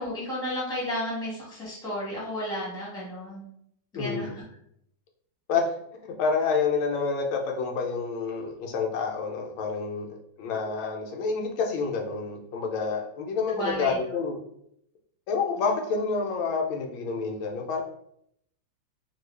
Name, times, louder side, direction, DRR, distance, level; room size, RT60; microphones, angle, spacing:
voice 1, 0.0-3.5 3.9-4.4 13.5-14.0, left 1 dB, ahead, -7 dB, 1.0 m, -33 dB
voice 2, 3.9-4.4 5.5-5.7 6.0-14.4 15.3-17.8, left 4 dB, 90° left, 2 dB, 1.4 m, -28 dB
3.0 x 2.6 x 3.2 m, 0.72 s
omnidirectional pair, 2.2 m